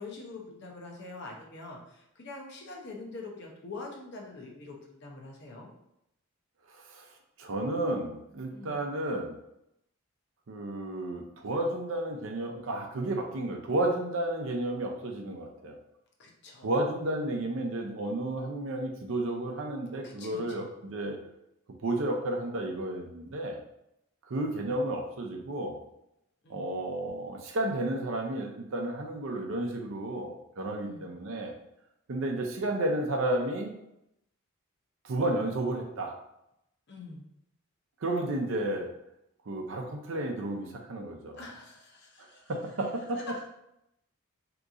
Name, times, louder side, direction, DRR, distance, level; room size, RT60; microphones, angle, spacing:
voice 1, 0.0-5.7 8.5-8.8 16.2-16.8 17.1-17.4 20.0-20.6 26.4-26.7 30.8-31.1 36.9-37.2 41.4-42.5 43.2-43.5, left 3 dB, 50° left, -1 dB, 0.7 m, -44 dB
voice 2, 6.7-7.0 7.4-9.4 10.5-15.8 16.6-21.2 21.8-23.6 24.3-25.8 26.5-31.6 32.1-33.7 35.0-36.2 38.0-38.9 39.5-41.4 42.5-43.5, right 1 dB, 60° right, 2 dB, 0.5 m, -32 dB
2.9 x 2.5 x 3.6 m, 0.82 s
head